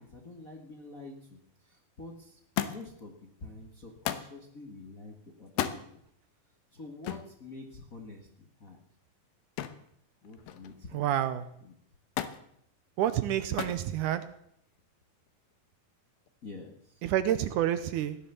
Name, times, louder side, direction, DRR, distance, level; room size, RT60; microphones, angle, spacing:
voice 1, 0.0-2.4 2.7-6.0 6.7-8.8 10.2-11.2 11.6-11.7 16.4-17.0, left 3 dB, 35° left, 1 dB, 1.4 m, -47 dB
Thump thud, 2.6-3.0 4.0-4.4 5.5-5.8 7.0-7.3 9.6-9.9 10.2-10.8 12.2-12.4 13.6-13.9 14.8-15.3 16.3-16.4, left 11 dB, 85° left, 2.7 m, -34 dB
voice 2, 10.9-11.4 13.0-14.2 17.0-18.2, right 11 dB, 75° right, 12 dB, 2.0 m, -28 dB
16.5 x 10.5 x 6.9 m, 0.72 s
omnidirectional pair, 4.1 m